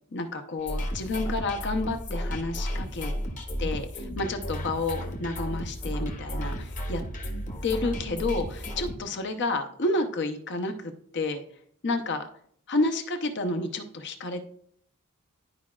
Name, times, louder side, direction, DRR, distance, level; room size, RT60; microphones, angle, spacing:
voice 1, 0.1-3.1 3.6-7.0 7.6-11.4 11.8-12.3 12.7-14.4, left 2 dB, 50° left, 6 dB, 0.8 m, -30 dB
sound 1, 0.6-9.0, equal, 35° left, 1.1 m, -33 dB
11.5 x 4.7 x 2.4 m, 0.63 s
head